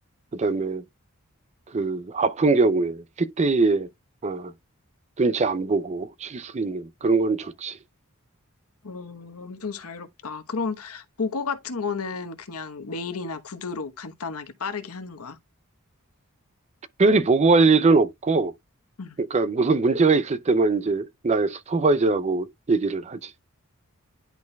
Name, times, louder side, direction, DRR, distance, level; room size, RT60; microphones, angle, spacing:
voice 1, 0.3-0.8 1.7-3.9 4.2-4.5 5.2-7.8 17.0-18.5 19.2-23.3, right 3 dB, 30° right, 0.4 m, -22 dB
voice 2, 8.8-15.4 19.0-19.2, left 4 dB, 85° left, 1.1 m, -32 dB
10.5 x 4.1 x 2.3 m
head